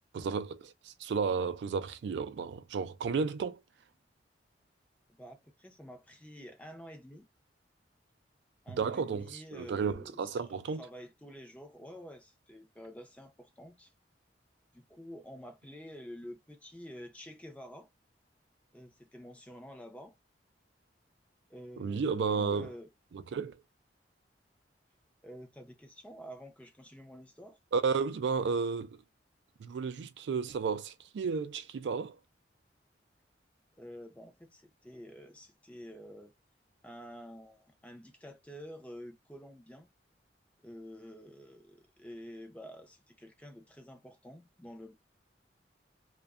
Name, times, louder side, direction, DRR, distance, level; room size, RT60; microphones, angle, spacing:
voice 1, 0.1-3.6 8.7-10.9 21.8-22.7 23.1-23.6 27.7-29.0 29.6-32.2, right 5 dB, 75° right, 0.3 m, -33 dB
voice 2, 5.2-7.3 8.6-13.9 14.7-17.9 18.7-20.2 21.5-22.9 25.2-27.6 33.8-36.3 36.8-39.9 40.6-44.9, equal, 10° left, 0.5 m, -49 dB
2.5 x 2.2 x 2.4 m
head